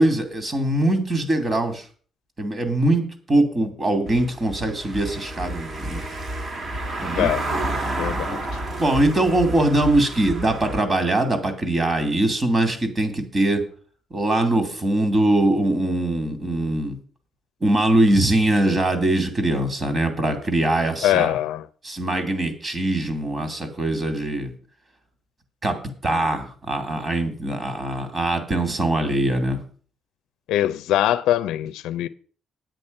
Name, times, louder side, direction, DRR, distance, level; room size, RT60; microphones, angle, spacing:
voice 1, 0.0-1.9 2.4-6.0 7.0-7.7 8.3-8.4 8.8-13.6 14.1-17.0 17.6-21.4 21.8-24.5 25.6-25.8 26.0-29.6, right 1 dB, 30° right, 2.6 m, -22 dB
Car passing by / Engine, 4.1-10.8, right 1 dB, 45° right, 2.5 m, -30 dB
voice 2, 7.2-7.5 8.0-8.4 21.0-21.6 30.5-32.1, left 13 dB, 90° left, 0.4 m, -22 dB
9.1 x 8.7 x 5.3 m
cardioid pair, 90°, 0 cm